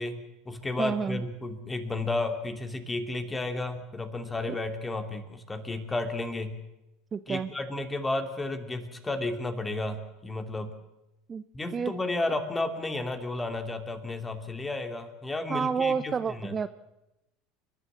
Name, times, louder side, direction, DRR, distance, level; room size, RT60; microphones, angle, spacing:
voice 1, 0.0-6.5 7.3-10.7 11.5-16.5, left 2 dB, 15° left, 7 dB, 2.9 m, -32 dB
voice 2, 0.8-1.2 7.1-7.5 11.3-11.4 11.7-11.9 15.5-16.7, right 6 dB, 30° right, 13 dB, 0.7 m, -29 dB
29.5 x 12.0 x 7.6 m, 0.94 s
hypercardioid pair, 75°, 0 cm